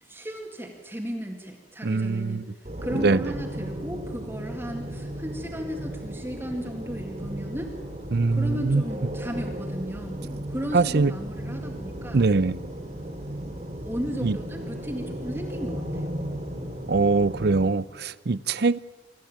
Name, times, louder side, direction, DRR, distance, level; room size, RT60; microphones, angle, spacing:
voice 1, 0.0-2.5 2.8-7.7 8.3-12.2 13.4-13.6 13.8-16.1, equal, 10° right, 2 dB, 2.1 m, -35 dB
voice 2, 1.8-2.4 2.9-3.2 8.1-8.8 10.7-11.1 12.1-12.6 14.2-14.4 16.9-18.8, right 3 dB, 55° right, 19 dB, 0.6 m, -22 dB
sound 1, 2.6-17.6, right 1 dB, 35° right, 3.1 m, -35 dB
25.5 x 13.5 x 8.8 m, 1.4 s
head